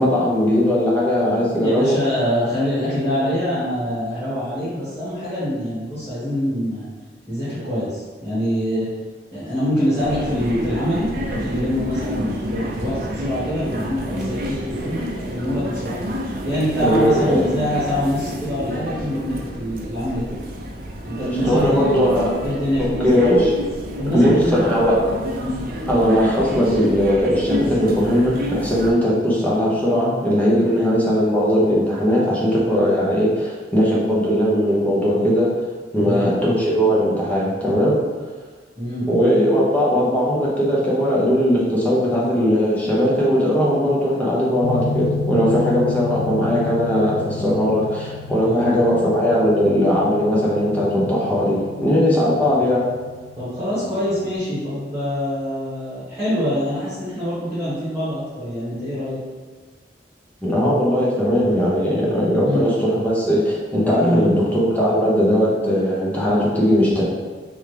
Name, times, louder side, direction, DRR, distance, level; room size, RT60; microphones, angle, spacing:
voice 1, 0.0-2.0 16.8-17.4 21.2-22.3 22.8-23.5 24.1-25.0 25.9-35.5 35.9-38.0 39.1-52.9 60.4-67.0, equal, 10° left, -6 dB, 1.0 m, -19 dB
voice 2, 1.6-6.9 7.3-8.9 9.3-16.0 16.4-20.4 21.0-22.1 22.4-23.3 24.0-25.1 25.4-25.6 30.7-30.8 36.0-36.3 38.8-39.0 48.4-48.7 53.4-59.2 62.4-62.6 64.0-64.4, equal, 15° right, -13 dB, 1.5 m, -24 dB
sound 1, 10.0-28.9, equal, 55° right, 0.5 m, -29 dB
sound 2, 44.6-54.4, left 4 dB, 70° left, 1.0 m, -31 dB
3.5 x 3.2 x 3.3 m, 1.4 s
head